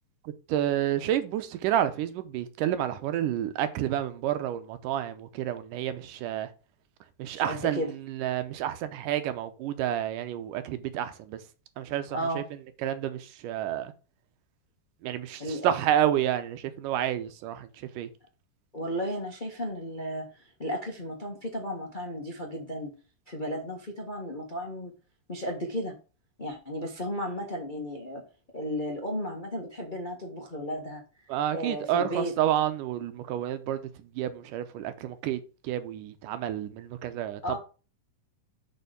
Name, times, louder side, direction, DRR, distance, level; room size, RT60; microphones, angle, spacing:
voice 1, 0.5-6.5 7.2-11.4 11.8-12.4 12.8-13.9 15.0-17.7 18.0-18.1 31.3-33.9 34.2-37.4, right 11 dB, 80° right, 2.4 m, -29 dB
voice 2, 7.3-7.9 12.1-12.5 15.4-15.7 18.7-22.9 23.3-24.9 25.3-25.9 26.4-28.2 28.5-31.0 31.5-32.3 37.4-37.6, equal, 40° left, 0.6 m, -34 dB
6.8 x 5.5 x 5.1 m
omnidirectional pair, 3.8 m